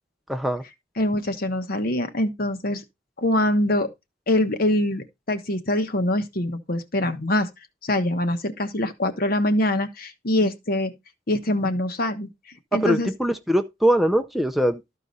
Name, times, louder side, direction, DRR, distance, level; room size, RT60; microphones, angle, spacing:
voice 1, 0.3-0.6 12.7-14.8, equal, ahead, 0.6 m, -22 dB
voice 2, 1.0-2.8 3.2-3.9 4.3-7.5 7.8-10.9 11.3-12.3 12.7-13.1, left 1 dB, 50° left, 1.2 m, -24 dB
13.5 x 4.9 x 4.1 m
head